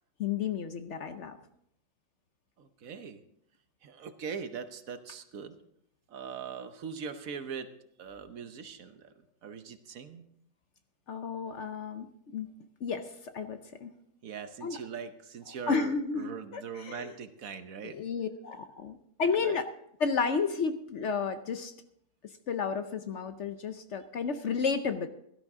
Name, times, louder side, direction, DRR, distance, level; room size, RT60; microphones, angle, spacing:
voice 1, 0.2-1.4 11.1-12.1 12.3-12.5 12.8-13.9 14.6-14.8 15.7-17.1 17.8-19.6 20.0-21.7 22.5-25.1, left 5 dB, 55° left, 9 dB, 0.9 m, -32 dB
voice 2, 2.6-3.2 3.8-5.5 6.1-7.7 8.0-9.1 9.4-10.3 14.2-18.0 19.4-19.6, right 6 dB, 65° right, 10 dB, 1.2 m, -41 dB
16.5 x 12.5 x 3.6 m, 0.73 s
omnidirectional pair, 1.7 m